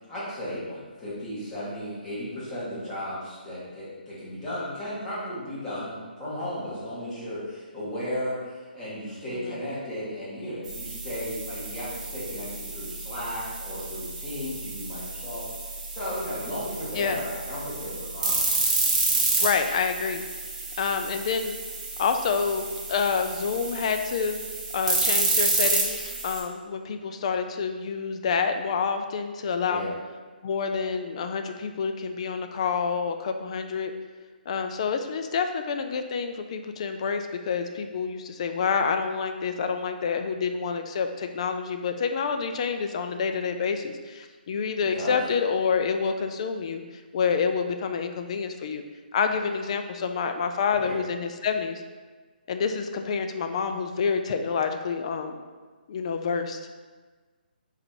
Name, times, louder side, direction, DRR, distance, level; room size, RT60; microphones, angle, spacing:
voice 1, 0.1-15.4 15.9-18.5 29.7-29.9 44.9-45.2 50.8-50.9, left 1 dB, 10° left, -10 dB, 1.2 m, -35 dB
sound 1, 10.6-26.4, right 3 dB, 40° right, 1.0 m, -30 dB
voice 2, 19.4-20.2 20.8-21.6 22.0-24.4 24.7-29.9 30.4-33.9 34.5-46.8 47.1-48.8 49.1-51.8 52.5-55.4 55.9-56.6, left 5 dB, 35° left, 7 dB, 0.3 m, -28 dB
4.0 x 2.7 x 4.3 m, 1.4 s
hypercardioid pair, 160°, 5 cm